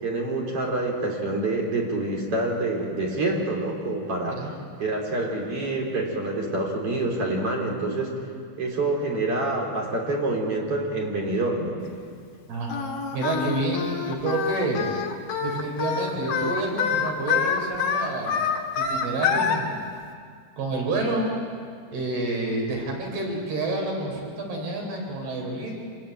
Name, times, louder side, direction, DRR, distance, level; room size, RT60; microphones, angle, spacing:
voice 1, 0.0-4.5 4.8-8.1 8.6-11.8, right 2 dB, 35° right, -1 dB, 4.4 m, -27 dB
Singing, 12.7-19.6, left 6 dB, 60° left, 3.1 m, -26 dB
voice 2, 13.1-14.9 15.4-18.4 18.8-19.8 20.6-21.3 21.9-25.7, right 2 dB, 80° right, 0 dB, 6.0 m, -28 dB
26.0 x 20.5 x 9.0 m, 2.1 s
omnidirectional pair, 4.5 m